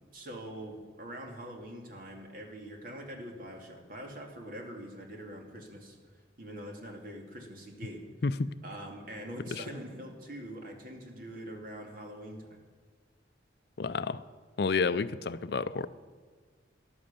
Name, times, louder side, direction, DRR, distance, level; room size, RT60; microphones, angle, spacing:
voice 1, 0.1-6.0 6.4-8.1 8.6-12.6, right 1 dB, 45° right, 2 dB, 2.5 m, -44 dB
voice 2, 8.2-8.5 9.5-9.6 13.8-14.2 14.6-15.9, left 4 dB, 55° left, 14 dB, 0.5 m, -30 dB
14.5 x 11.5 x 6.9 m, 1.5 s
head